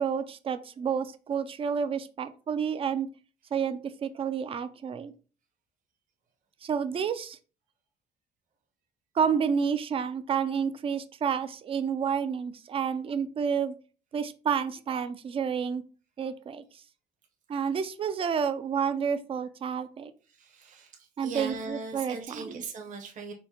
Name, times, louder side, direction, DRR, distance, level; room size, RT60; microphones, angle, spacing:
voice 1, 0.0-3.1 3.5-5.1 6.6-7.4 9.1-13.7 14.1-15.8 16.2-16.8 17.5-20.1 21.2-22.6, right 7 dB, 35° right, 11 dB, 0.4 m, -30 dB
voice 2, 20.4-23.3, right 4 dB, 50° right, 3 dB, 1.0 m, -39 dB
4.5 x 2.1 x 4.4 m, 0.37 s
cardioid pair, 110°, 17 cm